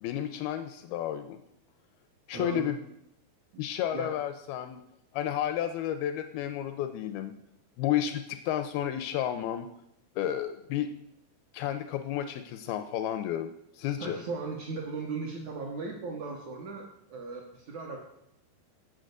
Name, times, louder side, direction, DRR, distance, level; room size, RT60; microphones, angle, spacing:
voice 1, 0.0-1.4 2.3-2.8 3.6-4.8 5.1-7.4 7.8-9.7 10.2-10.9 11.5-14.2, left 11 dB, 80° left, 9 dB, 2.2 m, -31 dB
voice 2, 2.3-2.7 3.5-3.6 3.9-4.1 14.0-18.0, right 4 dB, 70° right, -1 dB, 1.8 m, -37 dB
7.5 x 6.8 x 6.5 m, 0.78 s
omnidirectional pair, 4.6 m